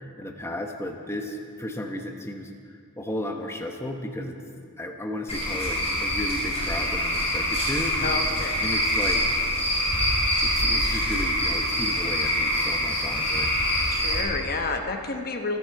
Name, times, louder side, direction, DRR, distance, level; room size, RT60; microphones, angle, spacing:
voice 1, 0.2-2.5 3.0-4.4 4.8-8.0 8.6-9.4 10.4-13.5, left 1 dB, 10° left, 3 dB, 1.1 m, -34 dB
Cricket / Frog, 5.3-14.2, equal, 30° left, 5.3 m, -25 dB
voice 2, 8.0-8.6 13.9-15.6, left 3 dB, 45° left, 5 dB, 1.1 m, -30 dB
27.0 x 10.5 x 4.7 m, 2.2 s
head